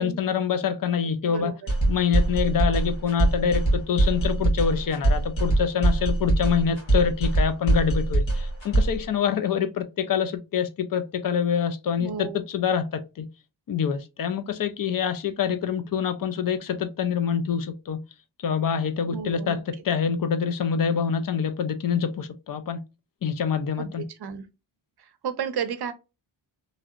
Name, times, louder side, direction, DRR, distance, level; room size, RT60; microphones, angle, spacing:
voice 1, 0.0-1.5 1.9-13.3 13.7-18.0 18.4-19.6 19.8-22.8 23.2-24.0, left 7 dB, 45° left, 0.5 m, -26 dB
voice 2, 1.2-1.5 12.0-12.5 19.1-19.6 23.8-24.5 25.0-25.9, right 7 dB, 55° right, 0.5 m, -33 dB
sound 1, 1.7-9.0, right 2 dB, 75° left, 1.5 m, -23 dB
3.0 x 2.7 x 2.4 m
wide cardioid pair, 145°, 46 cm